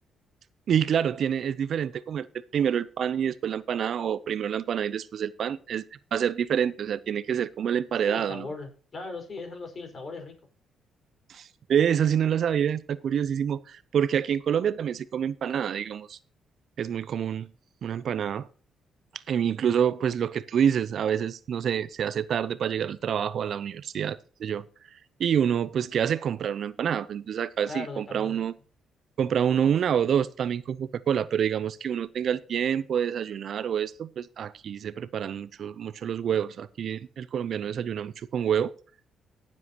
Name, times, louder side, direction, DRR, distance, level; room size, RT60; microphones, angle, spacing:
voice 1, 0.7-2.3 2.5-5.8 6.1-8.5 11.3-16.2 16.8-17.5 17.8-18.5 19.3-24.7 24.9-28.5 29.2-38.7, right 8 dB, 60° right, 0.6 m, -27 dB
voice 2, 8.0-10.3 27.7-28.4, left 3 dB, 40° left, 4.9 m, -38 dB
17.5 x 7.5 x 3.0 m
cardioid pair, 90°, 0 cm